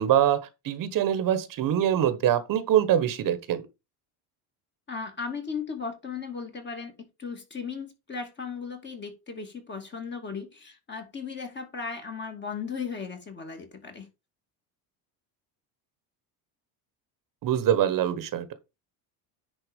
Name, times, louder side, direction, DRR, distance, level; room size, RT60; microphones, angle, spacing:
voice 1, 0.0-3.6 17.4-18.5, right 10 dB, 45° right, 1.3 m, -24 dB
voice 2, 4.9-6.9 7.2-14.1, left 5 dB, 25° left, 2.3 m, -36 dB
10.0 x 4.1 x 5.2 m
cardioid pair, 135°, 45 cm